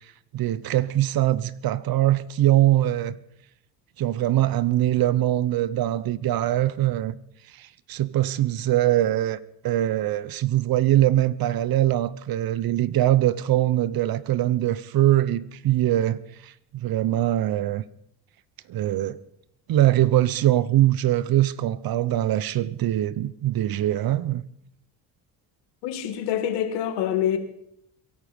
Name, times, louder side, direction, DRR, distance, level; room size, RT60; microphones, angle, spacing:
voice 1, 0.3-3.2 4.0-7.1 7.6-9.4 9.6-17.8 18.7-19.2 19.7-24.4, right 13 dB, 60° right, 1.0 m, -22 dB
voice 2, 25.8-27.4, left 10 dB, 85° left, 2.2 m, -26 dB
23.0 x 11.5 x 5.3 m
supercardioid pair, 85°, 40 cm